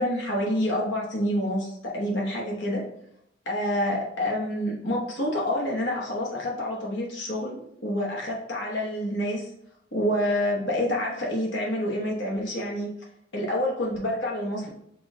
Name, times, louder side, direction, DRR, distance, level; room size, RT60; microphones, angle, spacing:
voice 1, 0.0-2.8 3.5-9.5 9.9-12.9 13.3-14.7, left 1 dB, 70° left, -3 dB, 1.1 m, -27 dB
6.0 x 2.4 x 3.6 m, 0.74 s
head